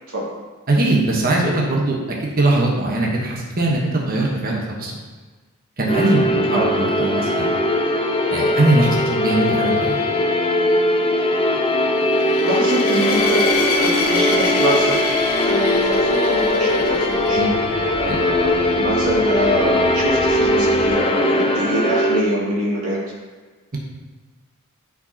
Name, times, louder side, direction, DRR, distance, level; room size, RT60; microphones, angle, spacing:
voice 1, 0.7-5.0 5.8-7.6 8.3-10.0 17.3-17.5 18.1-18.2, right 2 dB, 40° right, -2 dB, 1.2 m, -20 dB
sound 1, 5.9-22.2, left 1 dB, 25° left, 0.6 m, -20 dB
sound 2, 12.1-17.4, left 3 dB, 80° left, 1.1 m, -26 dB
voice 2, 12.3-15.0 15.4-17.7 17.9-23.0, right 1 dB, 75° right, -7 dB, 2.5 m, -24 dB
sound 3, 13.1-20.9, equal, ahead, 1.5 m, -40 dB
13.0 x 5.0 x 2.9 m, 1.3 s
head